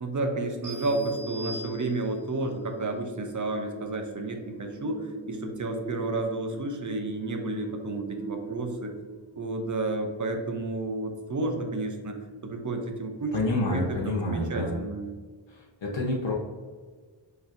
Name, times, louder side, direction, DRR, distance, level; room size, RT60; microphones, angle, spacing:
voice 1, 0.0-8.9 9.4-12.2 12.4-13.3 13.7-15.1, right 2 dB, 40° right, 4 dB, 0.6 m, -31 dB
sound 1, 0.6-9.7, right 2 dB, 20° left, 0.9 m, -41 dB
sound 2, 0.6-2.4, equal, 75° right, 1.3 m, -42 dB
voice 2, 13.3-14.7 15.5-16.3, left 2 dB, 65° left, -3 dB, 0.8 m, -28 dB
4.2 x 3.3 x 2.5 m, 1.5 s
wide cardioid pair, 60°, 48 cm